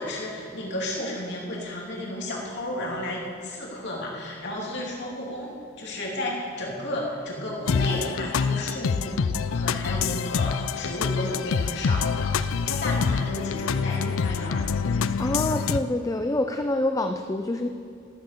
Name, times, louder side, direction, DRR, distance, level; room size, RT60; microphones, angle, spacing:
voice 1, 0.0-9.2 9.5-14.6, left 1 dB, 55° left, -3 dB, 3.0 m, -33 dB
sound 1, 7.7-15.8, left 5 dB, 75° left, 0.4 m, -26 dB
voice 2, 15.2-17.7, left 1 dB, 15° left, 6 dB, 0.4 m, -26 dB
13.5 x 8.2 x 6.7 m, 2.5 s
head